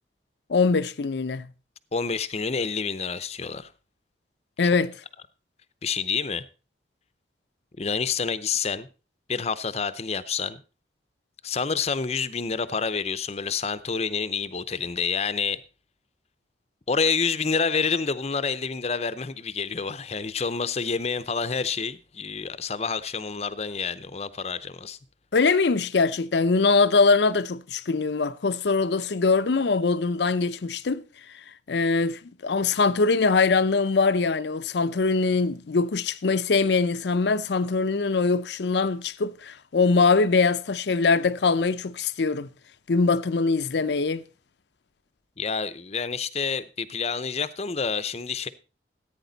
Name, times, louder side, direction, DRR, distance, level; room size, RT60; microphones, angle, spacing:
voice 1, 0.5-1.5 4.6-5.0 25.3-31.0 31.7-42.5 42.9-44.2, left 4 dB, 75° left, 0.6 m, -22 dB
voice 2, 1.9-3.7 4.6-4.7 5.8-6.4 7.8-8.9 9.3-10.6 11.4-15.6 16.9-25.0 45.4-48.5, left 5 dB, 35° left, 0.6 m, -28 dB
14.5 x 9.0 x 4.0 m
head